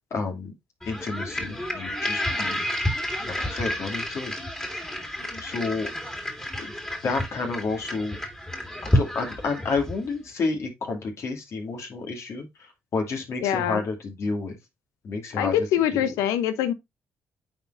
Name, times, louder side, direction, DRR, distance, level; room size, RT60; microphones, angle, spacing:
voice 1, 0.1-0.5 0.9-2.6 3.3-4.3 5.4-5.9 6.6-6.7 7.0-8.2 8.8-14.6 15.0-16.1, left 4 dB, 60° left, 2.3 m, -30 dB
sound 1, 0.8-10.1, left 1 dB, 10° left, 2.2 m, -30 dB
voice 2, 13.4-13.8 15.4-16.7, left 10 dB, 90° left, 0.7 m, -24 dB
8.7 x 4.2 x 2.6 m
supercardioid pair, 65°, 5 cm